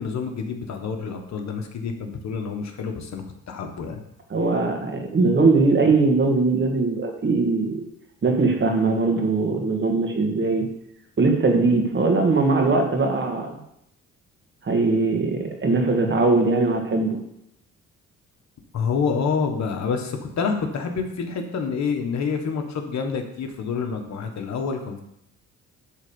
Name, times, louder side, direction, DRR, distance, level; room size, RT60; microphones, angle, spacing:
voice 1, 0.0-4.0 18.7-25.0, left 5 dB, 65° left, 4 dB, 1.6 m, -28 dB
voice 2, 4.3-7.8 8.2-10.7 11.2-13.5 14.6-17.2, right 3 dB, 40° right, 3 dB, 1.9 m, -20 dB
10.5 x 4.0 x 7.1 m, 0.78 s
cardioid pair, 90°, 30 cm